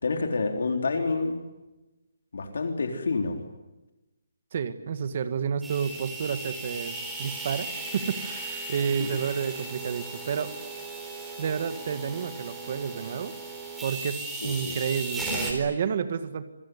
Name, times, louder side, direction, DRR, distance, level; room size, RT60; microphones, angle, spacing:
voice 1, 0.0-1.4 2.3-3.4 9.0-9.1 14.4-14.8, left 3 dB, 65° left, 4 dB, 4.0 m, -28 dB
voice 2, 4.5-10.5 11.4-13.3 13.8-16.4, right 7 dB, 35° right, 10 dB, 1.8 m, -30 dB
sound 1, 5.6-15.5, right 3 dB, 5° right, 4.2 m, -36 dB
26.5 x 22.0 x 9.8 m, 1.0 s
hypercardioid pair, 175°, 0 cm